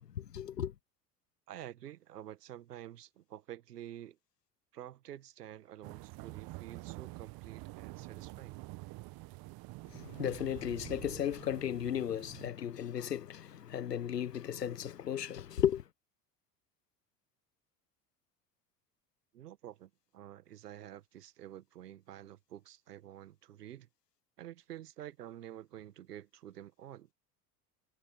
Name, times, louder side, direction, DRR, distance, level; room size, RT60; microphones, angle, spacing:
voice 1, 0.1-0.7 9.9-15.8, left 9 dB, 85° left, 1.3 m, -35 dB
voice 2, 1.5-4.2 4.7-8.6 19.3-23.9 24.4-27.1, right 12 dB, 75° right, 2.0 m, -49 dB
sound 1, 5.8-12.5, right 23 dB, 50° right, 1.5 m, -47 dB
figure-of-eight pair, 75°, 47 cm